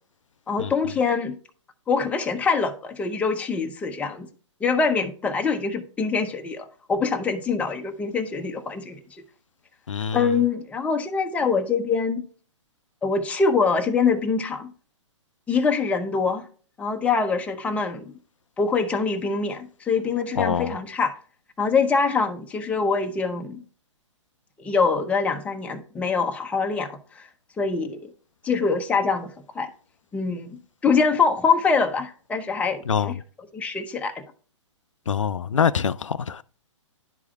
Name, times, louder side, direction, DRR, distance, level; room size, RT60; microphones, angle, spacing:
voice 1, 0.5-1.3 1.9-4.3 4.6-9.0 10.1-12.2 13.0-14.7 15.5-16.5 16.8-18.1 18.6-21.1 21.6-23.6 24.6-27.3 27.6-28.1 28.4-29.7 30.1-33.1 33.5-34.2, left 5 dB, 10° left, 0.7 m, -24 dB
voice 2, 9.9-10.3 20.4-20.8 32.9-33.2 35.1-36.4, left 7 dB, 80° left, 0.4 m, -25 dB
11.0 x 4.8 x 2.3 m
figure-of-eight pair, 120°, 16 cm